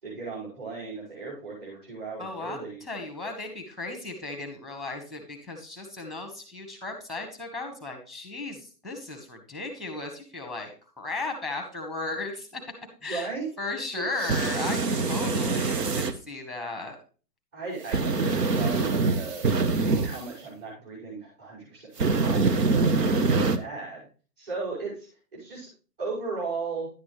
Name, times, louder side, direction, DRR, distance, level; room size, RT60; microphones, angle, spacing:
voice 1, 0.0-2.8 13.0-13.5 14.0-14.1 17.5-19.5 20.0-24.1 24.4-25.7 26.0-26.9, right 4 dB, 35° right, -6 dB, 5.6 m, -36 dB
voice 2, 2.2-10.7 11.0-12.6 13.0-13.3 13.6-17.0, left 3 dB, ahead, 4 dB, 1.1 m, -35 dB
sound 1, 14.2-16.1 17.9-20.2 22.0-23.6, right 3 dB, 80° right, 1.2 m, -24 dB
11.0 x 8.4 x 3.2 m, 0.36 s
hypercardioid pair, 150°, 48 cm